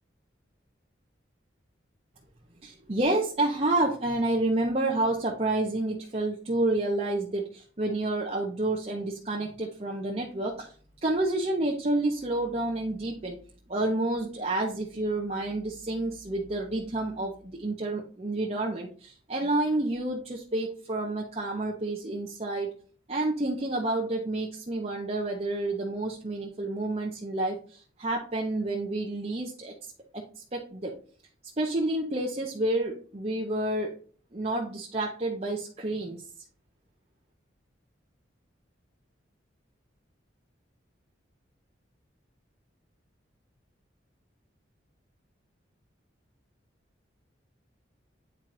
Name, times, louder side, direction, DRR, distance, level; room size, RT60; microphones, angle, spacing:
voice 1, 2.6-10.7 11.0-13.4 13.7-22.7 23.1-30.2 30.5-30.9 31.6-33.9 34.3-36.2, right 2 dB, 30° right, -1 dB, 0.7 m, -29 dB
8.9 x 4.4 x 2.6 m, 0.43 s
head